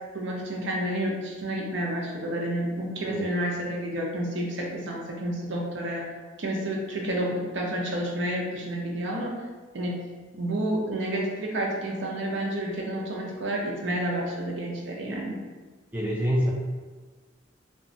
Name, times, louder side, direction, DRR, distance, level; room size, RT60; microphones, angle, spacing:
voice 1, 0.1-6.1 6.4-9.3 9.7-10.0 10.3-15.4, right 1 dB, 65° right, -1 dB, 0.5 m, -30 dB
voice 2, 15.9-16.5, equal, 10° right, -5 dB, 0.3 m, -25 dB
2.9 x 2.2 x 2.6 m, 1.4 s
head